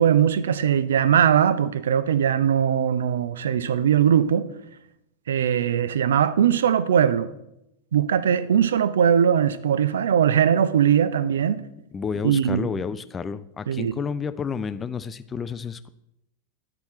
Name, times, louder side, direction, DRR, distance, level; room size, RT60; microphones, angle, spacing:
voice 1, 0.0-4.5 5.3-7.3 7.9-11.6 12.2-12.6 13.7-13.9, right 8 dB, 65° right, 0.4 m, -20 dB
voice 2, 11.9-15.9, left 6 dB, 20° left, 0.4 m, -30 dB
10.5 x 4.3 x 4.2 m
figure-of-eight pair, 90°, 0 cm